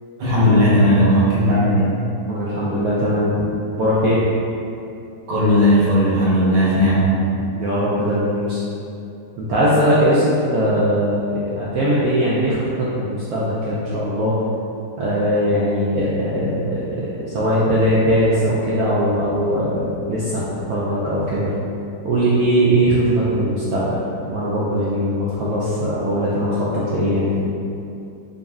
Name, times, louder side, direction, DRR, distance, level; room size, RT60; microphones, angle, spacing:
voice 1, 0.2-1.9 5.3-7.1, equal, 40° right, -8 dB, 0.9 m, -16 dB
voice 2, 2.3-3.4 3.7-4.2 7.5-8.6 9.4-14.3 15.0-21.5 22.0-24.0 24.3-27.4, equal, 70° right, -8 dB, 1.0 m, -20 dB
3.8 x 2.6 x 3.5 m, 2.6 s
omnidirectional pair, 1.9 m